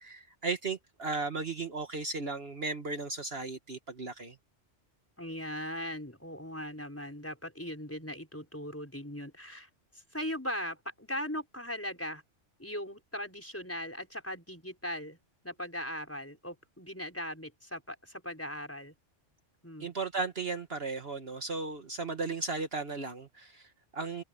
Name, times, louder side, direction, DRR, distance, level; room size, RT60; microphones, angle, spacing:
voice 1, 0.0-4.4 19.8-24.2, right 3 dB, 55° right, 1.7 m, -35 dB
voice 2, 5.2-9.7 10.1-12.2 12.6-15.2 15.4-18.9 19.6-19.9, equal, 10° left, 5.2 m, -39 dB
open air
omnidirectional pair, 1.3 m